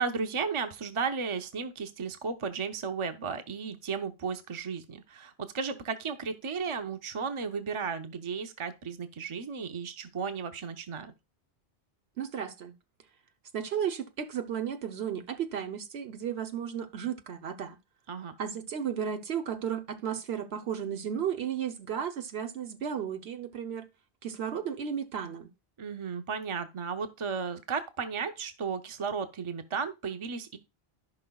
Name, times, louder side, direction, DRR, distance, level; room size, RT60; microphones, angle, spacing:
voice 1, 0.0-11.1 18.1-18.4 25.8-30.6, right 5 dB, 35° right, 0.7 m, -34 dB
voice 2, 12.2-12.8 13.5-17.8 18.4-23.9 24.2-25.5, right 8 dB, 80° right, 1.1 m, -34 dB
15.0 x 5.4 x 2.3 m
omnidirectional pair, 1.1 m